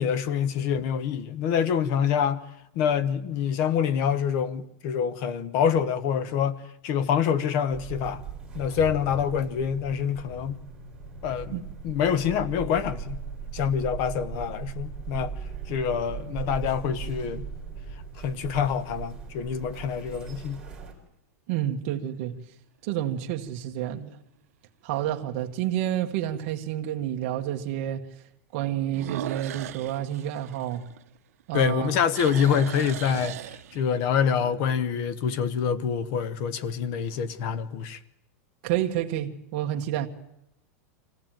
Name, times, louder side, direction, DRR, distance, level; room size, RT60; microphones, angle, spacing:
voice 1, 0.0-2.4 2.7-8.2 8.5-10.6 11.2-11.6 11.8-13.2 13.5-15.3 15.7-17.4 18.2-20.6 31.5-33.4 33.7-38.0, left 7 dB, 35° left, 1.1 m, -26 dB
sound 1, 7.7-20.9, right 6 dB, 5° right, 3.3 m, -38 dB
sound 2, 15.2-15.9 16.6-16.7 21.9-22.4 22.8-22.9 23.5-23.6 23.8-23.9 25.4-25.5 28.9-31.4 31.7-34.1, right 13 dB, 75° right, 1.0 m, -38 dB
voice 2, 21.5-22.3 22.8-24.2 24.8-28.0 28.5-30.8 31.5-31.9 38.6-40.1, right 11 dB, 40° right, 1.6 m, -29 dB
24.5 x 16.5 x 9.1 m
supercardioid pair, 175°, 8 cm